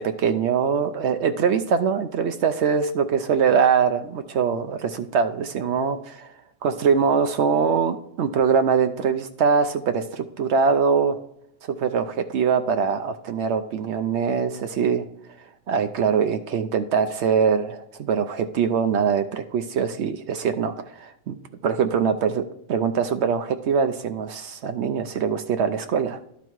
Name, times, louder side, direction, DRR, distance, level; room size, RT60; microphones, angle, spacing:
voice 1, 0.0-6.3 6.6-11.2 11.7-15.0 15.7-21.4 21.6-22.4 22.7-26.2, right 6 dB, 80° right, 8 dB, 0.6 m, -23 dB
11.5 x 4.0 x 4.6 m, 0.76 s
omnidirectional pair, 1.7 m